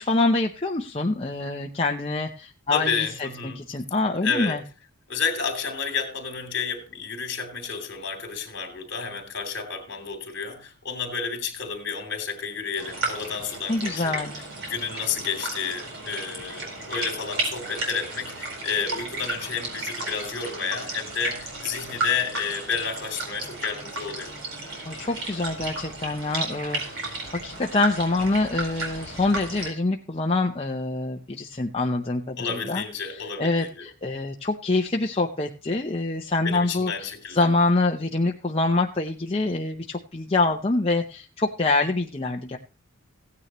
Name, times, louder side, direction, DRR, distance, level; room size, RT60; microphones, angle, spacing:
voice 1, 0.0-4.6 13.7-14.3 24.9-36.9 37.3-42.6, left 2 dB, 25° left, 0.7 m, -25 dB
voice 2, 2.7-3.7 4.2-4.6 5.1-14.3 14.7-24.3 32.4-33.9 36.4-37.4, left 6 dB, 55° left, 3.0 m, -31 dB
sound 1, 12.7-29.7, right 2 dB, 60° right, 4.4 m, -34 dB
16.5 x 9.7 x 3.1 m
head